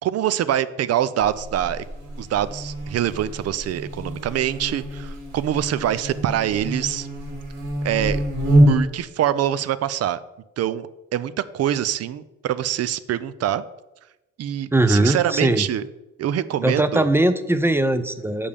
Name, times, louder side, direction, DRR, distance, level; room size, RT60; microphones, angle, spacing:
voice 1, 0.0-1.8 2.2-7.1 7.8-8.2 8.7-10.2 10.6-13.6 14.4-15.9 16.2-17.1, right 11 dB, 55° right, 16 dB, 0.5 m, -24 dB
Buzz, 1.2-9.0, right 1 dB, 75° right, 2.7 m, -25 dB
voice 2, 14.7-15.7 16.6-18.5, right 1 dB, 10° right, 11 dB, 0.5 m, -20 dB
6.9 x 5.3 x 5.1 m, 0.98 s
cardioid pair, 90°, 30 cm